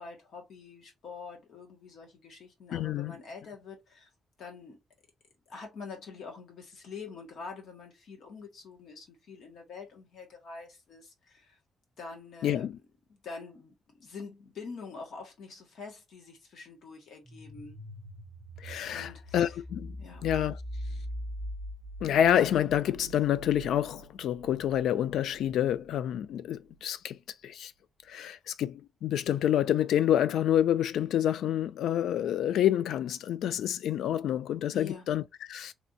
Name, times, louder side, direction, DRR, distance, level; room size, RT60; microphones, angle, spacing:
voice 1, 0.0-4.1 4.4-4.8 5.5-11.6 12.0-12.7 13.1-17.8 18.9-19.6 20.0-20.2 34.7-35.1, left 4 dB, 60° left, 1.3 m, -45 dB
voice 2, 2.7-3.1 12.4-12.8 18.6-20.0 20.2-20.6 22.0-27.2 27.4-27.7 28.1-35.7, left 10 dB, 85° left, 0.3 m, -28 dB
sound 1, 17.2-25.9, equal, 30° right, 0.6 m, -42 dB
3.3 x 2.6 x 2.6 m
wide cardioid pair, 175°, 0 cm